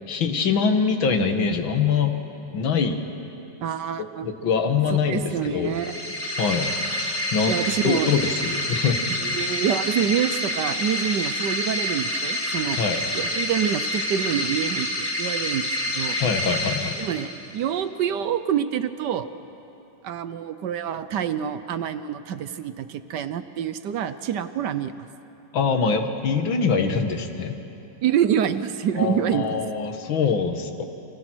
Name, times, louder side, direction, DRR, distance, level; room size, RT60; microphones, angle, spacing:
voice 1, 0.1-2.2 2.5-3.0 4.2-5.2 5.5-5.7 6.4-6.7 7.3-7.5 7.8-9.0 12.8-13.0 16.2-17.0 25.5-27.6 29.0-30.8, left 5 dB, 80° left, 6 dB, 2.3 m, -23 dB
voice 2, 3.6-4.3 5.1-6.0 7.5-8.1 9.1-12.8 13.1-16.2 17.0-19.3 20.0-25.0 28.0-29.6, right 9 dB, 65° right, 12 dB, 1.3 m, -26 dB
sound 1, 5.7-17.6, left 1 dB, 10° left, 2.1 m, -28 dB
29.5 x 24.5 x 6.2 m, 2.9 s
omnidirectional pair, 2.1 m